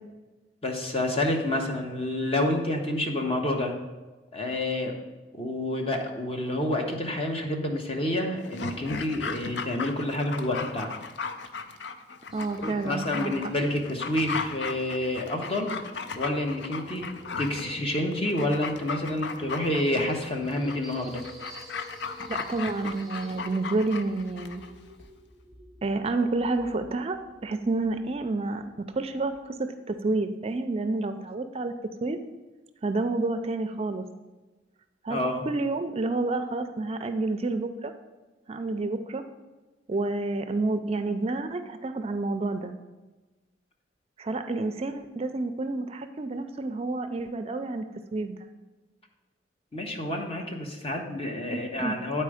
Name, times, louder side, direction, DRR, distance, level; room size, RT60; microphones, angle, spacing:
voice 1, 0.6-3.7 4.3-4.9 5.3-10.9 12.6-15.8 16.1-17.1 17.4-21.2 35.1-35.4 49.7-52.2, left 1 dB, 35° left, 2 dB, 1.0 m, -28 dB
Dog, 8.4-24.7 25.0-25.1, left 5 dB, 75° left, 0.5 m, -36 dB
sound 1, 12.3-29.4, equal, ahead, 0.9 m, -50 dB
voice 2, 12.3-13.3 22.3-24.6 25.8-31.7 32.0-32.2 32.8-34.0 35.0-35.2 35.4-37.9 38.5-39.2 39.9-42.7 44.2-47.9 48.1-48.5 51.5-52.0, right 2 dB, 35° right, 9 dB, 0.4 m, -29 dB
9.2 x 4.4 x 4.9 m, 1.2 s
head